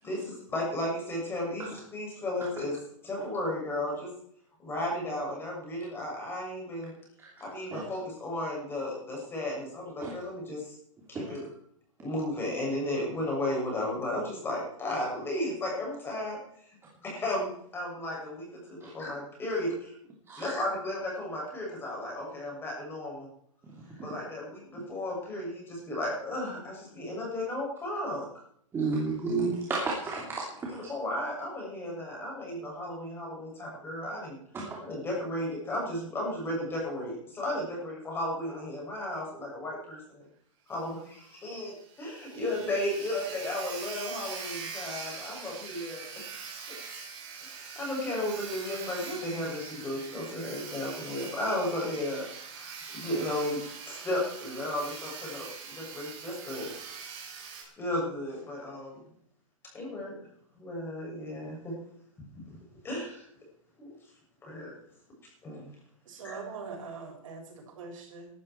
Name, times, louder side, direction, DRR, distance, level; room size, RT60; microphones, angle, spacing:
voice 1, 0.0-4.1 4.6-6.9 7.4-10.8 11.1-11.4 12.0-16.4 17.0-20.0 20.4-23.3 23.9-28.4 30.7-34.4 34.8-40.3 40.7-46.4 46.7-46.8 47.4-52.3 52.6-53.6 53.9-56.7 57.0-57.1 57.8-59.0 59.7-60.1 60.5-61.7 62.5-62.6 62.8-63.2 63.8-63.9 64.4-64.7 65.4-65.7 66.2-66.4, left 1 dB, 15° left, -2 dB, 7.2 m, -34 dB
voice 2, 28.7-30.8 34.5-34.8, right 3 dB, 15° right, -3 dB, 3.0 m, -32 dB
Sawing, 40.7-40.8 41.2-41.3 41.6-41.7 41.9-57.6, right 5 dB, 50° right, 7.8 m, -43 dB
voice 3, 66.1-68.3, right 4 dB, 70° right, 1 dB, 6.5 m, -42 dB
17.5 x 13.0 x 4.6 m, 0.66 s
hypercardioid pair, 145°, 17 cm